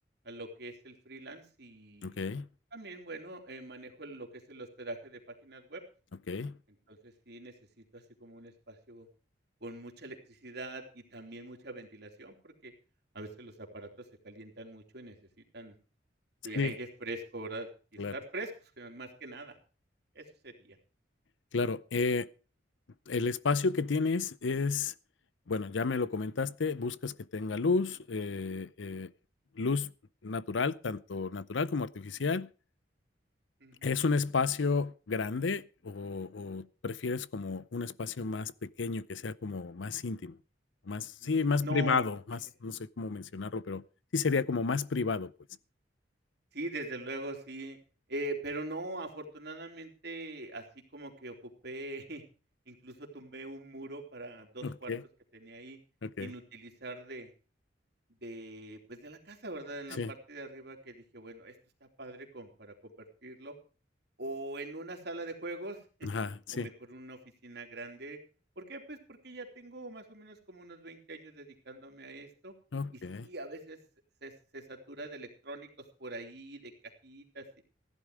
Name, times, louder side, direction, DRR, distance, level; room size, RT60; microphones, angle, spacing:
voice 1, 0.2-2.2 2.7-5.8 6.9-7.5 7.9-9.1 9.6-12.7 13.1-15.2 15.5-15.7 16.4-19.6 20.1-20.8 33.6-34.0 41.2-41.3 41.6-42.1 46.5-47.8 48.1-50.6 50.9-52.2 52.7-54.9 55.3-55.8 56.2-57.3 58.2-61.5 62.0-63.5 64.2-66.1 66.5-68.2 68.6-72.5 72.9-73.8 74.2-75.7 76.0-77.5, right 2 dB, 60° right, 3.2 m, -43 dB
voice 2, 2.0-2.5 6.3-6.6 16.6-16.7 18.0-18.1 21.5-22.3 23.1-24.9 25.5-29.1 29.6-29.9 30.2-32.5 33.8-40.4 40.9-43.8 44.1-45.3 54.6-55.0 56.0-56.3 60.0-60.1 66.0-66.7 72.7-73.3, left 4 dB, 85° left, 0.6 m, -32 dB
15.5 x 11.0 x 4.8 m
head